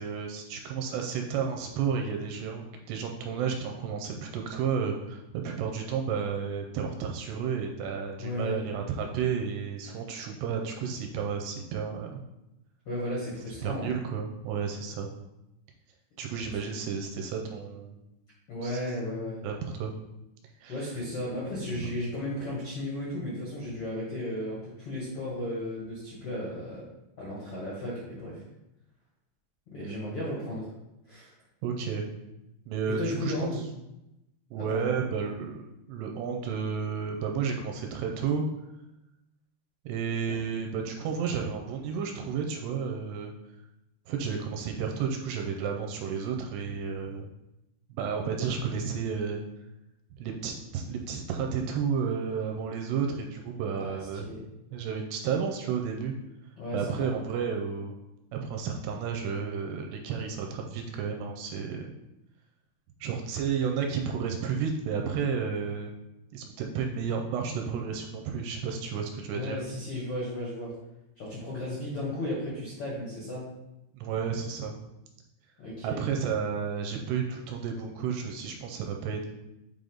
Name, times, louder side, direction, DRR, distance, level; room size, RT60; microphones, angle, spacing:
voice 1, 0.0-12.2 13.6-15.1 16.2-18.0 18.6-18.8 19.4-19.9 20.6-20.9 21.7-21.9 31.6-32.1 32.7-33.3 34.5-38.5 39.9-43.3 44.1-47.3 47.9-49.4 50.2-54.3 54.7-56.2 56.7-58.0 58.3-61.9 63.0-65.9 66.3-69.6 73.9-74.7 75.8-79.3, right 6 dB, 80° right, 2 dB, 2.6 m, -32 dB
voice 2, 8.2-8.6 12.8-13.9 18.5-19.4 20.7-26.9 27.2-28.4 29.7-30.7 31.1-31.3 32.9-33.6 34.6-34.8 40.3-40.4 53.7-54.4 56.6-57.1 69.3-70.7 71.2-73.5 75.6-76.0, left 1 dB, 85° left, -6 dB, 1.2 m, -34 dB
7.6 x 3.5 x 3.9 m, 0.90 s
omnidirectional pair, 5.0 m